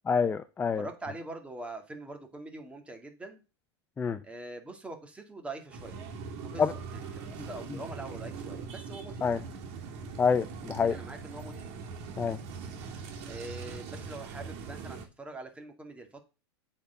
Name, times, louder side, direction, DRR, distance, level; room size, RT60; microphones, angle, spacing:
voice 1, 0.1-0.9 4.0-4.2 6.6-6.7 7.4-7.5 9.2-9.4 10.2-11.0 12.2-12.4, left 6 dB, 15° left, 0.5 m, -27 dB
voice 2, 0.8-3.4 4.2-6.0 6.4-6.6 6.9-9.3 10.8-11.7 13.2-16.2, right 2 dB, 10° right, 2.2 m, -43 dB
sound 1, 5.7-15.0, right 5 dB, 50° right, 2.7 m, -41 dB
8.2 x 4.4 x 6.9 m
hypercardioid pair, 115°, 14 cm